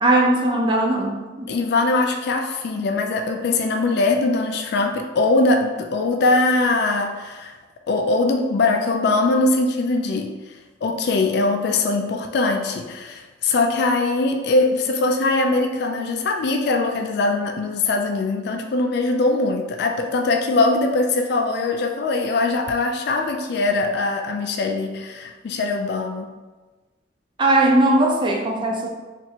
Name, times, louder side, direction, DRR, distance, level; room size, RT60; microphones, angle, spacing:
voice 1, 0.0-1.5 27.4-28.9, right 1 dB, 25° right, 0 dB, 0.5 m, -19 dB
voice 2, 1.5-7.5 7.9-10.4 10.8-26.3, left 3 dB, 65° left, 4 dB, 0.3 m, -21 dB
2.9 x 2.5 x 4.2 m, 1.2 s
head